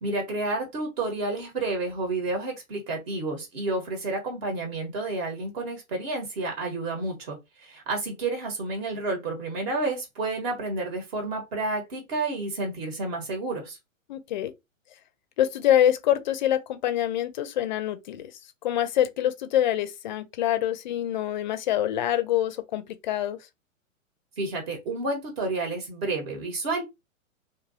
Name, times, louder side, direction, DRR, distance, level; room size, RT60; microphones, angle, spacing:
voice 1, 0.0-13.8 24.4-26.8, right 2 dB, 50° right, 1.1 m, -30 dB
voice 2, 14.1-14.5 15.4-18.3 18.6-23.4, left 11 dB, 35° left, 0.4 m, -25 dB
2.7 x 2.6 x 2.6 m
figure-of-eight pair, 115°, 41 cm